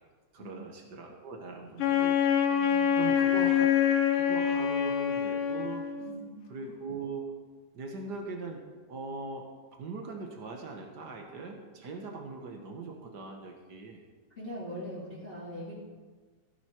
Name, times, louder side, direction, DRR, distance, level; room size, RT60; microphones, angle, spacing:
voice 1, 0.3-2.2 2.5-2.6 2.9-3.7 4.1-5.8 6.5-7.3 7.7-8.6 8.9-9.5 9.8-14.0, right 4 dB, 60° right, 2 dB, 1.0 m, -40 dB
Wind instrument woodwind instrument, 1.8-6.2, left 9 dB, 80° left, 2.7 m, -26 dB
voice 2, 2.5-3.0 6.0-6.4 14.4-15.7, equal, 15° left, -8 dB, 2.8 m, -42 dB
15.5 x 9.7 x 4.5 m, 1.4 s
omnidirectional pair, 3.8 m